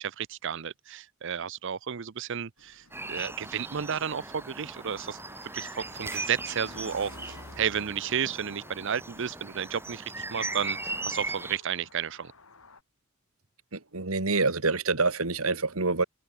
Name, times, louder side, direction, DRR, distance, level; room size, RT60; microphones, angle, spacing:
voice 1, 0.0-5.2 5.5-10.8 11.0-12.3, right 8 dB, 60° right, 0.6 m, -32 dB
sound 1, 2.6-12.8, left 3 dB, 75° left, 4.5 m, -53 dB
sound 2, 2.9-11.6, right 2 dB, 10° right, 3.6 m, -38 dB
voice 2, 13.7-16.0, right 3 dB, 80° right, 2.2 m, -26 dB
open air
head